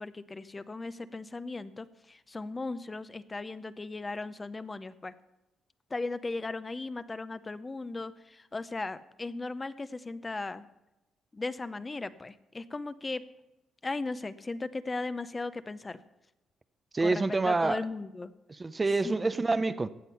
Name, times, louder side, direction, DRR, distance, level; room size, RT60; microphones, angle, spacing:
voice 1, 0.0-5.1 5.9-10.7 11.3-13.2 13.8-16.0 17.0-18.3, left 3 dB, 25° left, 0.6 m, -37 dB
voice 2, 16.9-17.8 18.5-19.9, right 3 dB, 25° right, 0.6 m, -27 dB
15.0 x 8.2 x 5.6 m
cardioid pair, 90°, 0 cm